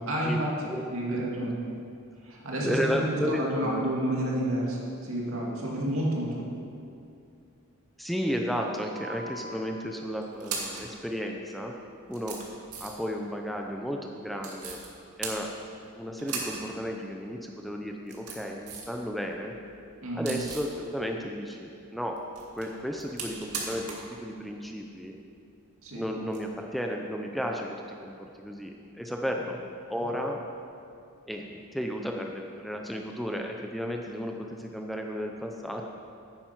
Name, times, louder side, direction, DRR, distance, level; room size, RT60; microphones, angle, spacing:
voice 1, 0.0-1.6 2.2-6.6 20.0-20.3 25.8-26.0, right 1 dB, 65° right, -3 dB, 2.4 m, -30 dB
voice 2, 1.1-1.5 2.6-3.9 8.0-11.8 12.1-14.8 15.2-15.5 15.9-19.5 20.1-22.2 22.6-25.2 25.9-29.6 29.9-30.4 31.3-35.8, equal, ahead, 1 dB, 0.6 m, -33 dB
sound 1, 8.9-9.5 10.2-10.9 11.6-11.7 12.1-13.1 14.4-14.9 15.2-15.9 16.2-16.7 17.0-17.1 17.9-19.0 19.3-20.8 22.2-24.1 24.4-24.5 26.3-26.4, right 4 dB, 90° right, 2.0 m, -38 dB
10.0 x 9.0 x 6.0 m, 2.5 s
head